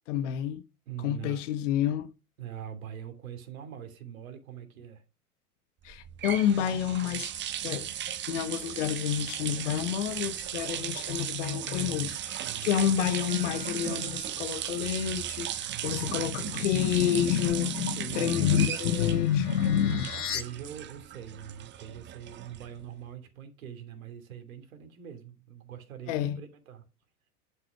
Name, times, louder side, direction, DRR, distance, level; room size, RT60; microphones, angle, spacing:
voice 1, 0.1-0.6 1.0-2.1 5.8-7.3 7.6-7.9 8.3-20.1 26.1-26.4, left 10 dB, 55° left, 1.3 m, -28 dB
voice 2, 0.9-1.4 2.4-5.0 12.4-12.8 15.6-16.7 17.9-18.6 20.1-26.8, right 9 dB, 60° right, 2.9 m, -43 dB
sound 1, 5.9-22.9, right 11 dB, 25° right, 1.0 m, -36 dB
Mallet percussion, 13.3-15.9, right 1 dB, 15° left, 2.6 m, -55 dB
sound 2, 18.2-20.4, left 8 dB, 75° left, 1.4 m, -39 dB
11.0 x 6.2 x 4.9 m
figure-of-eight pair, 85°, 45 cm